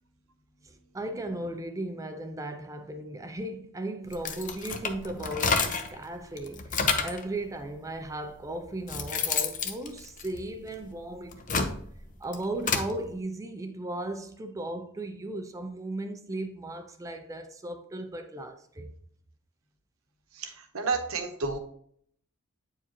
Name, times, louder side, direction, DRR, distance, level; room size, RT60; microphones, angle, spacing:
voice 1, 0.6-11.8 12.2-18.9, right 1 dB, 15° right, 0.4 m, -36 dB
sound 1, 4.1-6.0 6.4-7.2 8.1-8.2 8.6-10.8 11.2-12.9, left 5 dB, 40° left, 0.7 m, -29 dB
voice 2, 20.4-21.6, right 4 dB, 85° right, 1.0 m, -31 dB
8.6 x 4.7 x 3.0 m
head